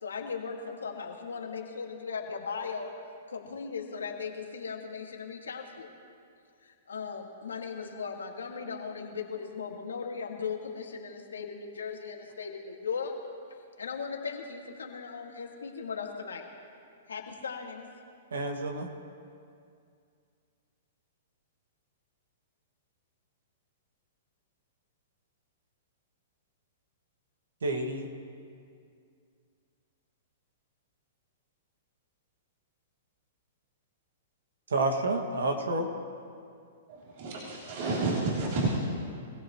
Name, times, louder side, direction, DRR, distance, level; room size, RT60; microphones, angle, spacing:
voice 1, 0.0-2.9 3.3-5.9 6.6-13.1 13.8-16.5 17.1-17.8, left 5 dB, 90° left, 1 dB, 2.1 m, -38 dB
voice 2, 18.3-18.9 27.6-28.1 34.7-35.9, right 2 dB, 85° right, 3 dB, 2.1 m, -29 dB
voice 3, 36.9-38.8, right 3 dB, 55° right, -5 dB, 3.4 m, -30 dB
25.0 x 16.5 x 3.2 m, 2.4 s
hypercardioid pair, 125°, 0 cm